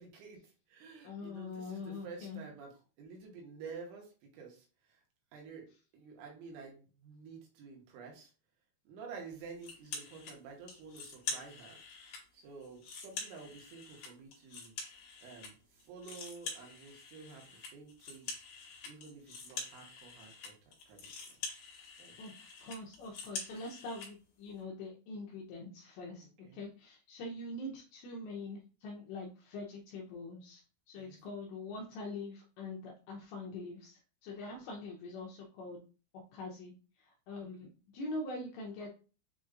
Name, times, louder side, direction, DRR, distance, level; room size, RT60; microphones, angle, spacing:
voice 1, 0.0-2.7 3.0-5.0 5.3-5.7 5.9-8.3 8.9-14.7 15.2-18.3 18.8-20.5 20.9-21.4 22.0-22.1 26.4-26.6 30.9-31.2 37.6-37.7, right 5 dB, 75° right, 1 dB, 3.2 m, -50 dB
voice 2, 1.0-2.4 22.2-26.3 26.5-30.6 30.9-35.8 36.3-37.7 37.9-38.9, left 2 dB, 80° left, -1 dB, 2.5 m, -44 dB
sound 1, 9.6-10.3 10.7-12.2 12.6-15.5 15.8-24.1, left 4 dB, 65° left, 2.6 m, -45 dB
7.8 x 2.8 x 2.4 m, 0.36 s
omnidirectional pair, 5.8 m